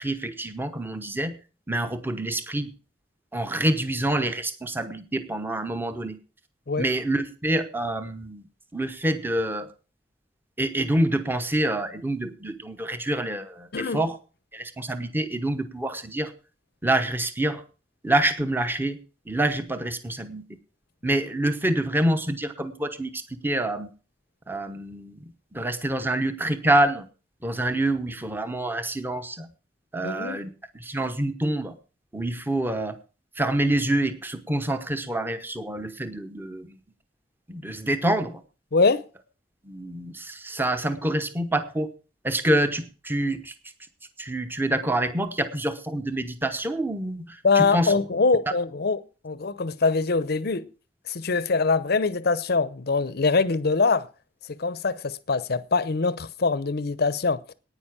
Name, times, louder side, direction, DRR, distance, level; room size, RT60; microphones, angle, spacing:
voice 1, 0.0-1.4 1.7-2.7 3.3-6.2 6.8-8.4 8.7-9.7 10.6-14.2 14.5-16.3 16.8-17.6 18.0-19.0 19.3-20.6 21.0-23.9 24.5-27.1 27.4-29.5 29.9-31.7 32.1-33.0 33.4-36.8 37.5-38.4 39.6-41.9 42.2-43.5 44.2-47.9, right 1 dB, 10° right, 1.0 m, -27 dB
voice 2, 30.0-30.4 38.7-39.1 47.4-50.7 51.1-54.1 54.6-57.4, left 4 dB, 60° left, 0.7 m, -23 dB
9.8 x 9.5 x 6.0 m
head